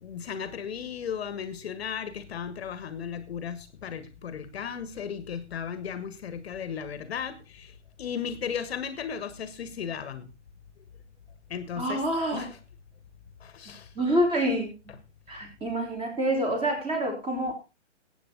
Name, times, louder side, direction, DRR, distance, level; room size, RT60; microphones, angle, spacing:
voice 1, 0.0-7.7 8.0-10.3 11.5-12.1 12.3-12.6 13.4-13.9 14.9-15.0, left 7 dB, 55° left, 12 dB, 1.5 m, -35 dB
voice 2, 11.8-12.5 13.9-14.7 15.3-17.5, right 1 dB, 15° right, 2 dB, 4.2 m, -27 dB
19.5 x 8.5 x 3.9 m, 0.31 s
figure-of-eight pair, 130°, 36 cm